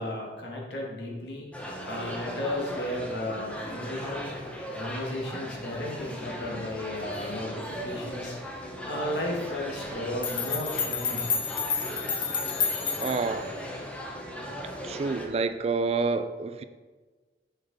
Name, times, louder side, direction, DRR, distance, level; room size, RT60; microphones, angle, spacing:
voice 1, 0.0-1.5 1.9-4.3 4.7-11.4, left 1 dB, 70° left, -2 dB, 1.7 m, -34 dB
sound 1, 1.5-15.3, equal, 5° left, 0.9 m, -38 dB
sound 2, 10.2-13.4, left 6 dB, 30° left, 0.5 m, -30 dB
voice 2, 13.0-13.5 14.8-16.6, right 4 dB, 35° right, 11 dB, 0.3 m, -28 dB
6.6 x 6.1 x 4.0 m, 1.4 s
head